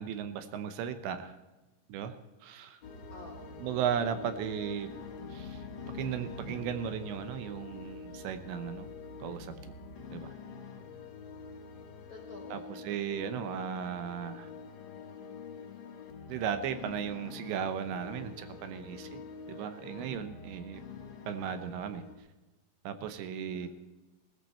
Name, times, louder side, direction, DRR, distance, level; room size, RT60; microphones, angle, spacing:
voice 1, 0.0-1.4 1.9-2.2 2.4-2.8 3.6-4.9 5.3-5.6 5.9-8.9 9.2-9.7 10.1-10.3 12.5-14.5 16.3-19.2 19.5-20.8 21.3-22.0 22.8-23.7, right 8 dB, 80° right, 9 dB, 3.1 m, -36 dB
sound 1, 2.8-22.1, left 5 dB, 55° left, 1.3 m, -46 dB
voice 2, 3.1-3.7 12.1-12.8 23.5-23.7, left 3 dB, 80° left, 2 dB, 1.1 m, -49 dB
19.5 x 13.5 x 4.4 m, 1.1 s
omnidirectional pair, 5.3 m